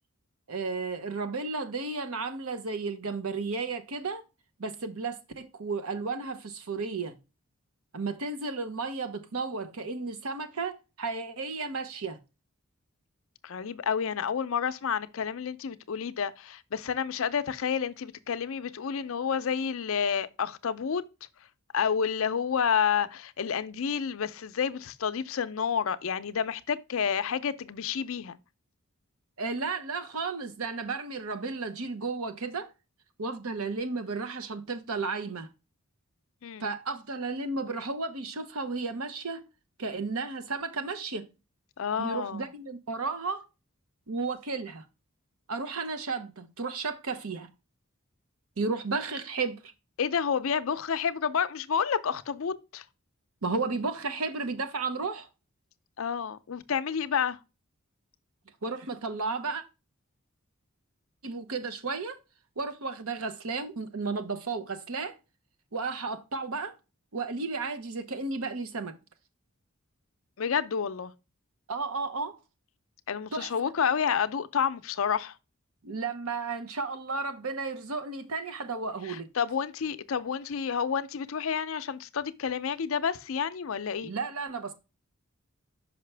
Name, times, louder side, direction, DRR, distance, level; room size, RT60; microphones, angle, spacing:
voice 1, 0.5-4.2 4.6-7.1 7.9-12.2 29.4-32.7 33.2-35.5 36.6-39.4 39.8-41.3 42.0-43.4 44.1-44.8 45.5-47.5 48.6-49.7 53.4-55.3 58.6-59.6 61.2-62.2 62.6-65.1 65.7-66.7 67.1-68.9 71.7-72.4 73.3-73.5 75.8-79.3 84.0-84.7, right 4 dB, 85° right, 0.9 m, -33 dB
voice 2, 13.4-21.0 21.7-28.4 36.4-36.6 41.8-42.4 50.0-52.8 56.0-57.4 70.4-71.1 73.1-75.3 79.1-84.1, left 7 dB, 70° left, 0.5 m, -29 dB
5.8 x 5.4 x 3.3 m
head